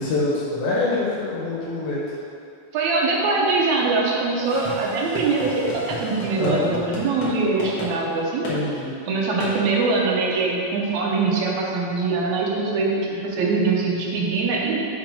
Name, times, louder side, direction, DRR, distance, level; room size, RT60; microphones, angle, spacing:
voice 1, 0.0-2.2 6.4-6.7 8.5-9.0, left 2 dB, 85° left, -6 dB, 2.5 m, -25 dB
voice 2, 2.7-8.5 9.1-14.9, right 3 dB, 80° right, -3 dB, 2.1 m, -23 dB
sound 1, 4.5-7.3 7.6-7.9 8.4-8.6 9.4-9.6, left 2 dB, 55° left, 1.5 m, -33 dB
6.1 x 3.8 x 5.1 m, 2.5 s
omnidirectional pair, 3.4 m